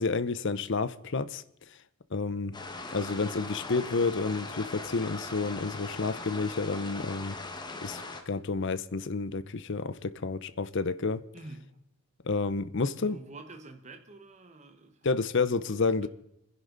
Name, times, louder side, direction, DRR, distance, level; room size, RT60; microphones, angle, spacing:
voice 1, 0.0-1.4 2.1-2.6 2.9-7.4 7.8-11.2 12.2-13.2 15.0-16.1, left 4 dB, 55° left, 0.7 m, -30 dB
sound 1, 2.5-8.2, left 3 dB, 20° left, 1.4 m, -40 dB
voice 2, 11.3-11.8 12.8-15.1 15.5-16.1, right 2 dB, 35° right, 1.2 m, -48 dB
28.0 x 10.5 x 3.9 m
head